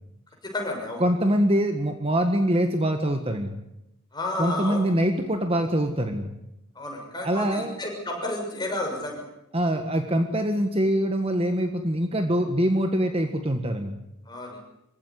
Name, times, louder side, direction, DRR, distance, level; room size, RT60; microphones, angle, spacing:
voice 1, 0.4-1.0 4.1-4.8 6.7-9.2 14.3-14.6, left 2 dB, 20° left, 1 dB, 6.4 m, -31 dB
voice 2, 1.0-3.6 4.4-6.3 7.2-7.8 9.5-14.0, equal, 25° right, 6 dB, 1.6 m, -24 dB
26.0 x 16.0 x 9.7 m, 0.86 s
head